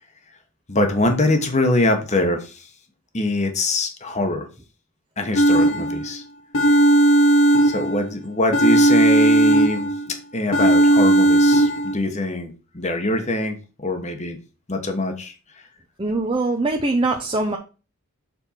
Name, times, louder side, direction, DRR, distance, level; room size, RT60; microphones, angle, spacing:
voice 1, 0.7-2.7 3.1-4.5 5.2-6.2 7.6-14.4 14.7-15.3, left 1 dB, 30° left, 5 dB, 1.2 m, -23 dB
sound 1, 5.4-6.1 6.5-8.1 8.5-10.1 10.5-12.0, right 1 dB, 65° left, 0.9 m, -16 dB
voice 2, 16.0-17.6, right 2 dB, 25° right, 2 dB, 0.7 m, -23 dB
7.1 x 4.4 x 4.3 m, 0.33 s
head